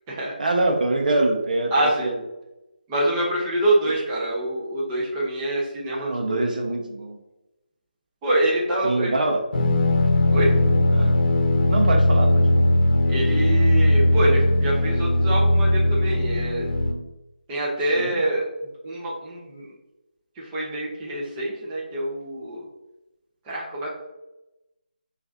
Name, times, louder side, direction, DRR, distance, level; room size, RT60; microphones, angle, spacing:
voice 1, 0.4-2.2 5.9-7.2 8.8-9.4 10.9-11.2 11.7-12.7 18.0-18.2, right 2 dB, 55° right, 2 dB, 0.7 m, -24 dB
voice 2, 1.7-2.1 2.9-6.4 8.2-9.1 10.3-10.5 13.1-16.7 17.5-18.5 18.8-19.7 20.4-22.6 23.5-23.9, right 1 dB, 15° right, -5 dB, 0.7 m, -25 dB
sound 1, 9.5-16.9, left 1 dB, 65° left, 0.8 m, -19 dB
6.7 x 2.5 x 2.6 m, 0.97 s
figure-of-eight pair, 160°, 5 cm